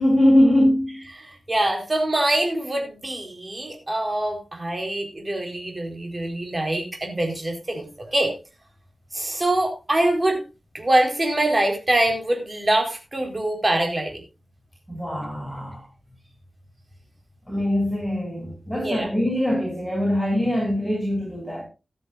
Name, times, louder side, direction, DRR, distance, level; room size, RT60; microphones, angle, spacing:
voice 1, 0.0-1.0 14.9-15.9 17.5-21.6, left 1 dB, 5° left, -3 dB, 7.0 m, -22 dB
voice 2, 1.2-7.9 8.1-8.3 9.1-10.4 10.7-14.2 18.7-19.1, right 1 dB, 30° right, 2 dB, 4.3 m, -24 dB
16.5 x 12.5 x 2.5 m, 0.28 s
wide cardioid pair, 105°, 0 cm